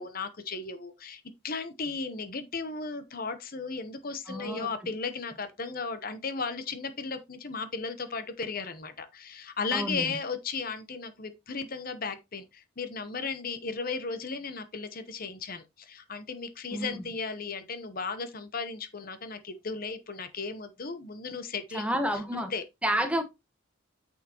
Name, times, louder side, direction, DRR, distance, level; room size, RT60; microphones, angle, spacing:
voice 1, 0.0-21.9 22.3-22.6, left 4 dB, 40° left, 0.9 m, -35 dB
voice 2, 4.3-4.7 9.7-10.1 16.7-17.0 21.7-22.5 22.8-23.2, equal, 5° right, 1.2 m, -30 dB
9.0 x 6.4 x 2.9 m
head